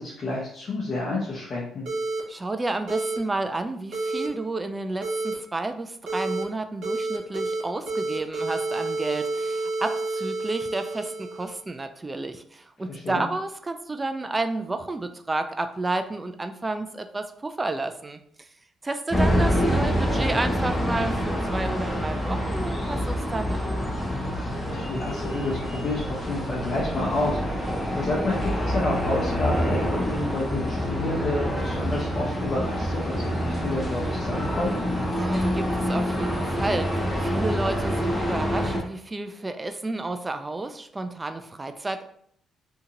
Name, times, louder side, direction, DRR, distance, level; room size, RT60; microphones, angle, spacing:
voice 1, 0.0-1.9 12.9-13.2 24.7-34.7, left 2 dB, 50° left, -4 dB, 0.7 m, -30 dB
sound 1, 1.9-2.2 2.9-3.2 3.9-4.3 5.0-5.3 6.1-6.4 6.8-7.6 7.9-11.6, right 3 dB, 70° right, 1.4 m, -29 dB
voice 2, 2.3-18.5 18.8-23.8 35.1-42.1, right 2 dB, 20° right, 8 dB, 0.3 m, -31 dB
sound 2, 19.1-38.8, equal, 5° left, 0.8 m, -26 dB
2.7 x 2.7 x 3.8 m, 0.66 s
cardioid pair, 90°, 0 cm